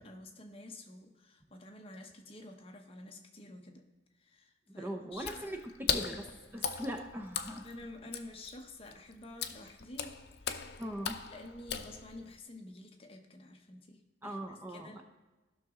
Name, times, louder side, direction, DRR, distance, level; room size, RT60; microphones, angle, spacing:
voice 1, 0.0-3.9 4.2-5.5 7.6-10.6 11.3-15.0, left 1 dB, 30° left, 3 dB, 0.9 m, -50 dB
voice 2, 4.7-7.6 10.8-11.2 14.2-15.0, equal, 10° right, 3 dB, 0.6 m, -41 dB
Water / Splash splatter, 5.1-12.4, left 7 dB, 60° left, 0.6 m, -39 dB
15.5 x 6.1 x 3.7 m, 1.1 s
head